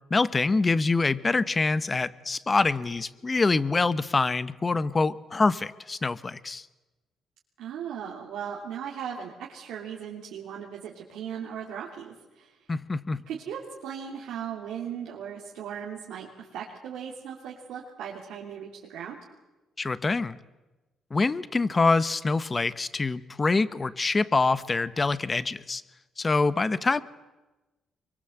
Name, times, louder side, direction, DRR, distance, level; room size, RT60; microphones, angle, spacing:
voice 1, 0.1-6.6 12.7-13.2 19.8-20.4 21.1-25.8 26.2-27.0, left 3 dB, 25° left, 16 dB, 1.1 m, -25 dB
voice 2, 7.6-12.5 13.3-19.2, right 8 dB, 85° right, -3 dB, 3.0 m, -38 dB
24.5 x 23.0 x 8.0 m, 1.1 s
cardioid pair, 90°, 0 cm